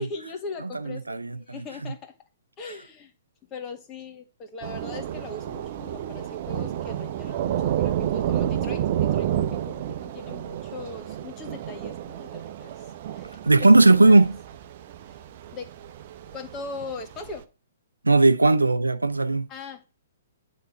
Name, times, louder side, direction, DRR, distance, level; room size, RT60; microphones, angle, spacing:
voice 1, 0.0-2.1 2.6-3.1 3.5-12.7 13.1-13.4 14.0-14.3 15.5-15.7 16.3-17.4 19.5-19.9, left 3 dB, 25° left, 1.9 m, -40 dB
voice 2, 0.6-1.4 13.4-14.4 18.0-19.5, right 2 dB, 90° right, 0.6 m, -17 dB
Thunder / Rain, 4.6-17.4, right 11 dB, 45° right, 0.8 m, -30 dB
9.7 x 4.2 x 6.7 m
figure-of-eight pair, 120°, 0 cm